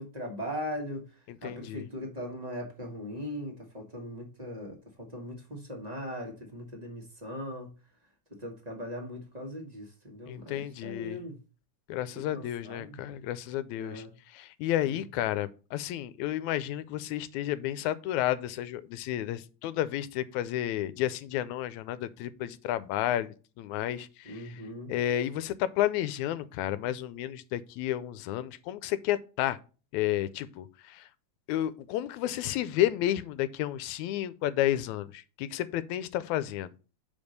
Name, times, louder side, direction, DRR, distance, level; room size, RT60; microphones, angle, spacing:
voice 1, 0.0-7.8 8.3-11.4 12.1-13.0 13.8-14.1 14.8-15.0 24.2-24.9, equal, 25° right, 0.8 m, -39 dB
voice 2, 1.3-1.9 10.3-11.2 11.9-24.6 24.9-29.6 29.9-31.1 31.5-36.7, left 13 dB, 85° left, 1.9 m, -31 dB
5.3 x 5.1 x 6.4 m
omnidirectional pair, 3.3 m